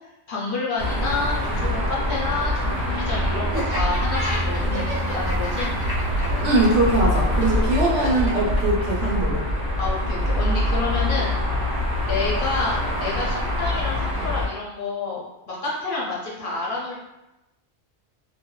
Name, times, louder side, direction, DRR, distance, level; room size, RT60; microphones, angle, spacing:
voice 1, 0.3-5.7 9.8-11.4 12.0-17.0, left 3 dB, 60° left, -4 dB, 0.7 m, -29 dB
sound 1, 0.8-14.5, left 1 dB, 55° right, 1.1 m, -24 dB
Laughter, 3.5-9.3, equal, 25° right, 0.5 m, -32 dB
voice 2, 6.4-9.4, right 2 dB, 70° right, -4 dB, 0.9 m, -21 dB
3.2 x 2.1 x 2.2 m, 0.95 s
omnidirectional pair, 1.2 m